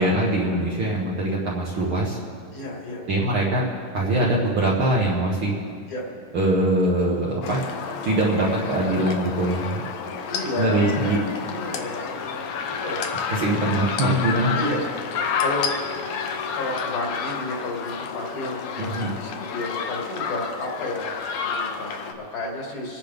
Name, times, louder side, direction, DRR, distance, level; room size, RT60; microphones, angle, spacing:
voice 1, 0.0-2.2 3.1-3.6 3.9-5.6 6.3-7.6 8.0-9.8 10.6-11.2 13.3-14.5 18.8-19.1, right 1 dB, 50° right, -4 dB, 1.7 m, -22 dB
voice 2, 2.5-3.1 5.9-6.1 9.4-9.5 10.3-13.1 13.8-13.9 14.5-15.7 16.5-21.1 21.4-23.0, left 2 dB, 65° left, -1 dB, 3.5 m, -32 dB
sound 1, 7.4-22.1, left 6 dB, 85° left, 1.2 m, -30 dB
27.5 x 9.9 x 3.5 m, 2.2 s
omnidirectional pair, 3.8 m